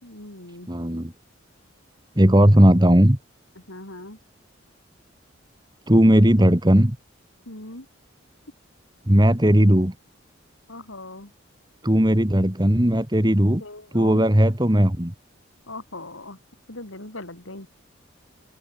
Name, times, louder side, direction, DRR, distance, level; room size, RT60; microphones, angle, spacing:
voice 1, 0.0-0.7 3.6-4.2 7.5-7.9 10.7-11.3 13.6-14.3 15.7-16.4 16.7-17.7, left 2 dB, 75° left, 5.8 m, -39 dB
voice 2, 0.7-1.1 2.2-3.2 5.9-7.0 9.1-9.9 11.8-13.6 13.9-15.1, equal, 20° right, 1.9 m, -17 dB
open air
head